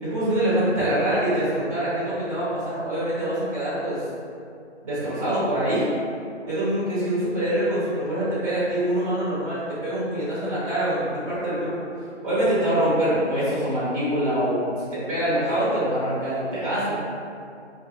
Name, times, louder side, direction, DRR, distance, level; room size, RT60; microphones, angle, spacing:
voice 1, 0.0-4.0 4.8-5.9 6.5-11.7 12.2-14.6 14.9-17.0, right 1 dB, 30° right, -12 dB, 0.8 m, -24 dB
2.5 x 2.1 x 2.7 m, 2.4 s
figure-of-eight pair, 160°, 36 cm